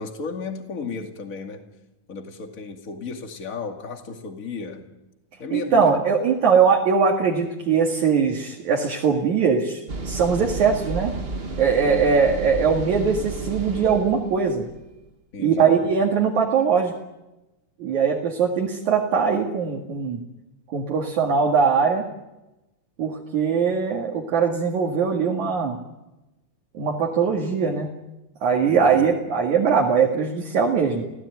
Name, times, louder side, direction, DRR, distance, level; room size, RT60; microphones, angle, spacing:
voice 1, 0.0-1.6 2.1-4.8 5.4-6.0 11.8-12.2 15.3-15.7 28.7-29.1, left 4 dB, 25° left, 4 dB, 2.1 m, -34 dB
voice 2, 5.5-11.1 11.6-14.7 15.4-16.9 17.8-20.2 20.7-22.0 23.0-25.8 26.7-27.9 28.4-31.0, right 6 dB, 55° right, -1 dB, 3.2 m, -21 dB
sound 1, 9.9-14.9, right 3 dB, 75° right, 0.5 m, -32 dB
28.5 x 16.5 x 9.3 m, 1.0 s
omnidirectional pair, 4.2 m